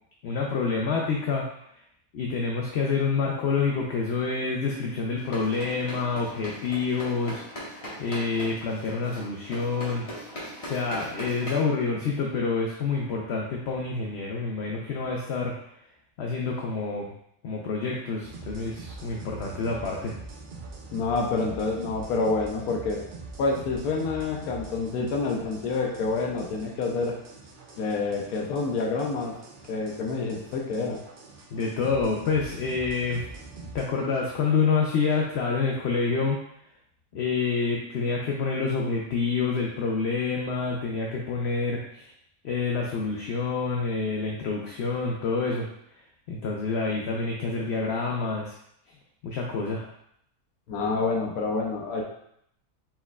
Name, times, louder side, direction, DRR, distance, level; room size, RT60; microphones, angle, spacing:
voice 1, 0.2-1.4 2.1-7.4 8.0-10.1 10.6-15.5 16.2-17.1 17.4-20.1 31.5-33.3 33.7-36.4 37.1-42.1 42.4-45.7 46.3-48.6 49.2-49.9, left 4 dB, 65° left, -1 dB, 0.7 m, -27 dB
sound 1, 5.2-11.6, equal, 25° left, 1.1 m, -40 dB
sound 2, 18.2-33.9, right 3 dB, 55° right, 0.5 m, -44 dB
voice 2, 20.9-23.0 23.4-27.1 27.8-29.4 29.7-31.0 50.7-52.0, left 3 dB, 85° left, 0 dB, 1.1 m, -28 dB
4.2 x 4.2 x 2.3 m, 0.72 s
omnidirectional pair, 1.5 m